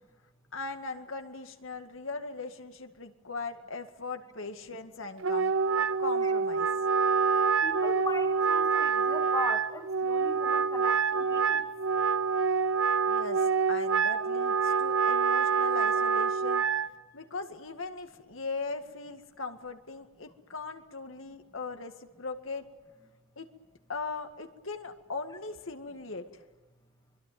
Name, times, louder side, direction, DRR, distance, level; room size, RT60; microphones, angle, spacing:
voice 1, 0.5-6.7 13.1-16.7 17.1-22.7 23.4-23.5 23.9-26.4, left 3 dB, 80° left, 6 dB, 2.0 m, -39 dB
Wind instrument woodwind instrument, 5.2-16.9, right 5 dB, 80° right, 0.9 m, -26 dB
voice 2, 7.4-11.7, left 2 dB, 20° left, 5 dB, 1.9 m, -39 dB
24.5 x 23.0 x 9.4 m, 1.1 s
head